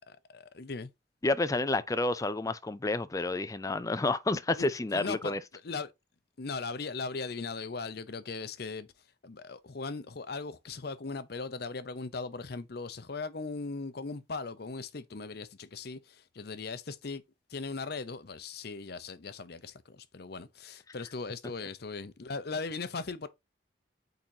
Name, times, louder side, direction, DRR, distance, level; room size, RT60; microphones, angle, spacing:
voice 1, 0.1-0.9 4.6-5.3 5.6-5.9 6.4-8.9 9.2-17.2 17.5-23.3, left 4 dB, 60° left, 0.7 m, -38 dB
voice 2, 1.2-5.4, left 2 dB, 20° left, 0.4 m, -30 dB
8.6 x 3.9 x 2.8 m
head